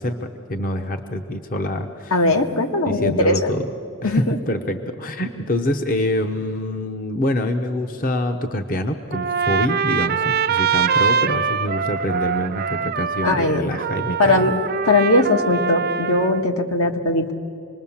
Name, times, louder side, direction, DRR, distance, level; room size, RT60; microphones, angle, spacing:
voice 1, 0.0-2.2 2.9-3.7 4.0-14.5, left 1 dB, 40° left, 6 dB, 0.8 m, -25 dB
voice 2, 2.1-3.5 4.0-4.4 13.2-13.6 14.2-14.5 14.8-17.3, left 2 dB, 75° left, 4 dB, 1.5 m, -19 dB
Trumpet, 9.1-16.4, right 6 dB, 45° right, 0.4 m, -23 dB
26.0 x 20.5 x 7.2 m, 2.6 s
head